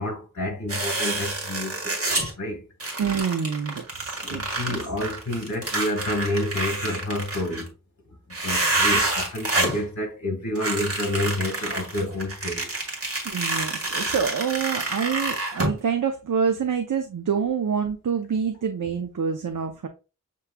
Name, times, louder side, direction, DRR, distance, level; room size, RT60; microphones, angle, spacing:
voice 1, 0.0-2.6 4.2-7.7 8.3-12.7, left 1 dB, 55° left, 1.4 m, -29 dB
sound 1, 0.7-2.3 2.8-7.7 8.3-9.8 10.5-15.7, right 2 dB, 40° right, 1.5 m, -28 dB
voice 2, 3.0-4.4 4.7-4.8 13.2-19.9, right 6 dB, 65° right, 0.6 m, -26 dB
6.8 x 3.0 x 2.2 m
wide cardioid pair, 60°, 34 cm